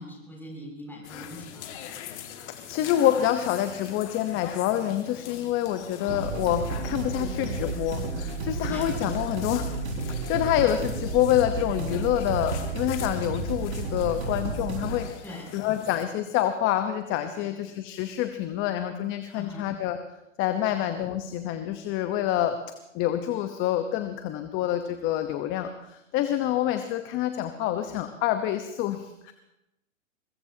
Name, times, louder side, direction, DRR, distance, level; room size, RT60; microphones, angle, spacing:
voice 1, 0.0-1.8 8.7-8.9 15.2-15.6 17.3-17.6 19.4-19.7 20.7-20.8, left 1 dB, 5° left, -2 dB, 7.3 m, -42 dB
sound 1, 1.0-16.1, left 9 dB, 60° left, 2.3 m, -42 dB
voice 2, 2.7-9.7 10.1-15.1 15.5-20.0 20.4-22.6 22.9-29.3, left 12 dB, 30° left, 8 dB, 1.0 m, -27 dB
sound 2, 6.1-15.0, right 3 dB, 55° right, 5.6 m, -32 dB
22.0 x 21.0 x 2.9 m, 0.89 s
hypercardioid pair, 125°, 40 cm